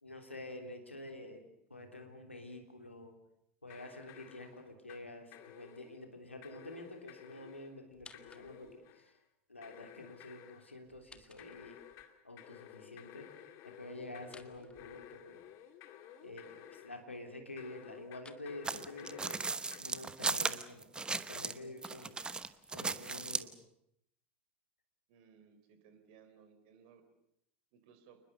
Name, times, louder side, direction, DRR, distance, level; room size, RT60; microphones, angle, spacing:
voice 1, 0.0-1.5 1.7-3.1 3.6-9.2 9.5-11.8 12.2-13.3 13.8-15.4 16.2-19.4 19.8-22.2 22.7-23.5, left 2 dB, 85° left, 4 dB, 3.3 m, -48 dB
sound 1, 3.7-5.1 5.3-6.0 6.4-7.8 8.1-9.2 9.6-10.8 11.4-17.1 17.6-19.8, left 11 dB, 45° left, 2.2 m, -54 dB
sound 2, 7.9-8.9 10.8-12.1 14.2-15.5 18.1-18.5 21.2-22.8, left 4 dB, 15° left, 1.6 m, -60 dB
sound 3, 18.6-21.6 21.8-23.5, right 4 dB, 15° right, 1.0 m, -36 dB
voice 2, 25.1-27.0 27.7-28.2, right 7 dB, 55° right, 9 dB, 4.2 m, -61 dB
29.0 x 20.5 x 6.9 m, 0.76 s
figure-of-eight pair, 80°, 6 cm